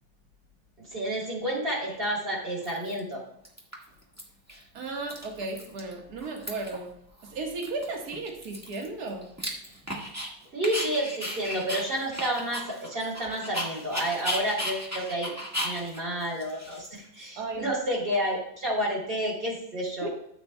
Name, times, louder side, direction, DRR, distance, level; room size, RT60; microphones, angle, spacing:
voice 1, 0.9-3.2 10.5-15.3 15.6-20.1, equal, 30° right, -2 dB, 3.3 m, -30 dB
Dog, 1.9-2.0 2.6-3.1 3.4-4.2 4.5-4.6 4.9-5.9 6.2-6.8 7.2-7.3 7.6-10.3 10.6-17.3, equal, 10° right, 1.5 m, -35 dB
voice 2, 4.7-6.9 7.2-9.3 17.4-17.7 20.0-20.1, right 3 dB, 55° right, 0 dB, 2.0 m, -35 dB
14.0 x 7.7 x 2.3 m, 0.74 s
omnidirectional pair, 2.0 m